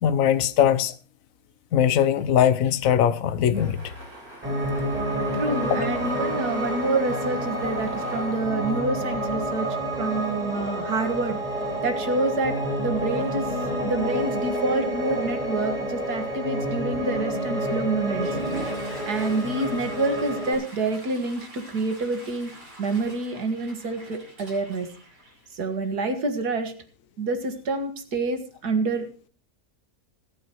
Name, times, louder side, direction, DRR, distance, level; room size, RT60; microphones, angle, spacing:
voice 1, 0.0-0.9 1.7-3.8 5.2-5.3, left 9 dB, 65° left, 1.2 m, -21 dB
sound 1, 3.5-9.3, right 1 dB, 70° right, 4.5 m, -44 dB
Piano, 4.4-20.5, equal, 25° right, 6.0 m, -29 dB
voice 2, 5.3-11.4 11.8-13.5 13.8-18.3 19.1-22.5 22.8-24.9 25.5-26.7 27.2-29.1, right 3 dB, 85° right, 2.3 m, -27 dB
Water / Toilet flush, 18.1-25.8, right 2 dB, 50° right, 5.5 m, -42 dB
25.5 x 9.1 x 3.1 m
omnidirectional pair, 1.6 m